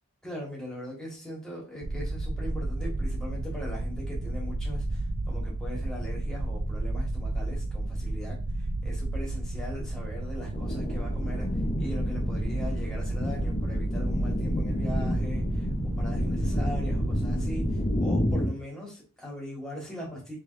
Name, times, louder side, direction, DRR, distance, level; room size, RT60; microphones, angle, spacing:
voice 1, 0.2-20.4, equal, 5° left, -4 dB, 1.5 m, -40 dB
sound 1, 1.8-17.9, right 2 dB, 50° right, 0.5 m, -32 dB
sound 2, 10.5-18.5, left 1 dB, 30° left, 0.6 m, -30 dB
4.8 x 3.4 x 2.5 m, 0.33 s
head